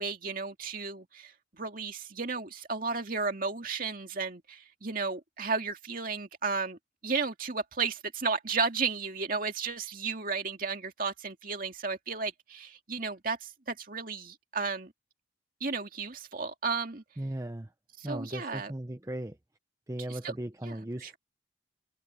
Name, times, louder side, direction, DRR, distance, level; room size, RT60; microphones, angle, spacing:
voice 1, 0.0-14.9 15.6-17.0 18.0-18.7 20.1-20.3 20.6-21.1, right 4 dB, 45° right, 2.4 m, -34 dB
voice 2, 17.2-17.7 18.0-19.4 19.9-21.2, right 1 dB, 15° right, 0.7 m, -37 dB
open air
head